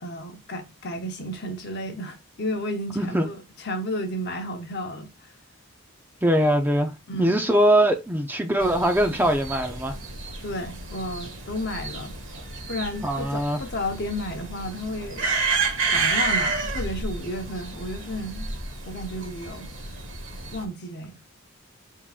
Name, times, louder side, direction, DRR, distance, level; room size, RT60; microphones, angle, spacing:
voice 1, 0.0-3.3 3.6-5.1 7.1-7.4 10.4-12.2 12.7-15.3 15.9-18.5 18.9-19.7 20.5-21.2, left 1 dB, 50° left, 0.9 m, -32 dB
voice 2, 2.9-3.3 6.2-6.9 7.2-10.0 13.0-13.6, right 1 dB, 10° right, 0.5 m, -22 dB
sound 1, 8.6-20.6, right 4 dB, 60° right, 1.3 m, -30 dB
5.8 x 3.7 x 2.4 m
head